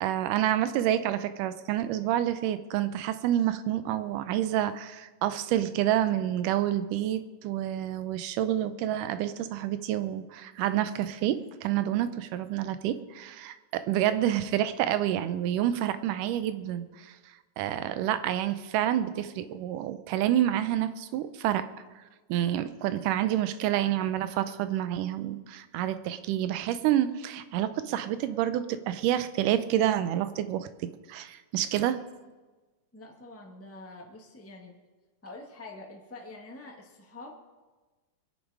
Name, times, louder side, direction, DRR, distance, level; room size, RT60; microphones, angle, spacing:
voice 1, 0.0-17.2 17.6-21.7 22.3-30.7 31.1-32.0, right 12 dB, 85° right, 12 dB, 2.3 m, -28 dB
voice 2, 32.9-34.7 35.2-37.3, left 2 dB, 15° left, 1 dB, 0.4 m, -46 dB
22.5 x 10.5 x 4.8 m, 1.3 s
omnidirectional pair, 3.6 m